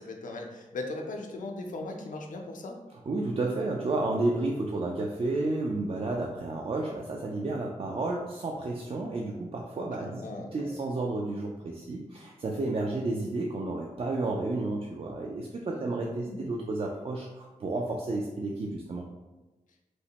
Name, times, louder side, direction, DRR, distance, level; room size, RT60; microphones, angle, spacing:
voice 1, 0.0-2.8 10.0-10.8 15.7-16.6, left 2 dB, 70° left, 2 dB, 0.5 m, -39 dB
voice 2, 3.1-10.2 10.5-19.0, right 2 dB, 45° right, -1 dB, 0.4 m, -31 dB
3.0 x 2.1 x 2.8 m, 1.1 s
cardioid pair, 45°, 14 cm